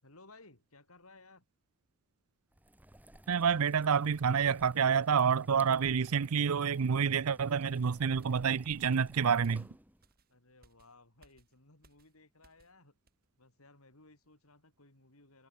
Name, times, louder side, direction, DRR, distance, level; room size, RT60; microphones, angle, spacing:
voice 1, 0.0-1.4 10.3-12.9 13.4-15.5, left 2 dB, 75° left, 6.3 m, -59 dB
sound 1, 2.5-10.1, right 1 dB, 5° right, 1.6 m, -57 dB
voice 2, 3.3-9.7, right 6 dB, 80° right, 0.6 m, -28 dB
sound 2, 7.6-12.8 13.1-13.3, right 2 dB, 45° right, 6.1 m, -69 dB
head